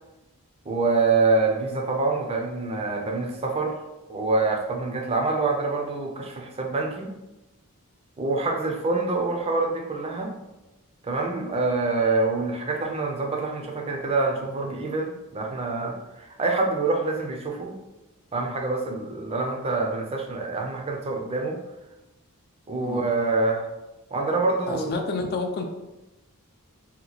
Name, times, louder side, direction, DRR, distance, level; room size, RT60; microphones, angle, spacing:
voice 1, 0.7-3.8 4.1-7.1 8.2-10.3 11.0-17.8 18.3-21.6 22.7-23.7 24.1-24.9, right 3 dB, 25° right, 1 dB, 0.4 m, -26 dB
voice 2, 24.7-25.6, left 3 dB, 45° left, 4 dB, 0.4 m, -30 dB
2.9 x 2.2 x 3.9 m, 1.0 s
head